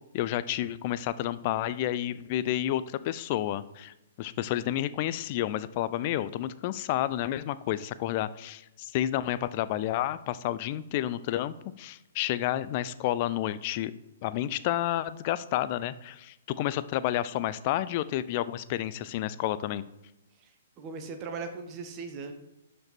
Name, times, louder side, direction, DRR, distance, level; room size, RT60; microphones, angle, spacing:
voice 1, 0.1-13.9 14.2-19.8, left 13 dB, 35° left, 15 dB, 0.4 m, -30 dB
voice 2, 20.3-22.3, right 4 dB, 25° right, 5 dB, 1.3 m, -39 dB
12.0 x 5.3 x 4.3 m, 0.92 s
figure-of-eight pair, 120°, 0 cm